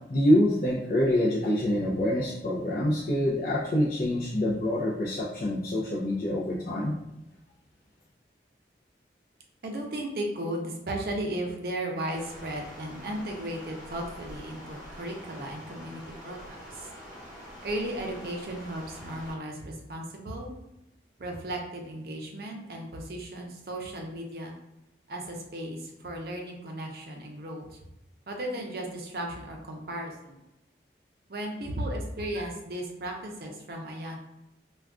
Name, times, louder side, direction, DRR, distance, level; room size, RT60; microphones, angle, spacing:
voice 1, 0.1-7.0, left 1 dB, 55° left, -6 dB, 0.4 m, -26 dB
voice 2, 9.6-16.9 17.6-20.5 21.2-24.5 25.1-27.8 28.3-30.4 31.3-34.2, right 1 dB, 55° right, 1 dB, 0.5 m, -35 dB
Stream, 12.1-19.3, equal, 15° left, 1.0 m, -45 dB
2.3 x 2.2 x 3.5 m, 0.90 s
head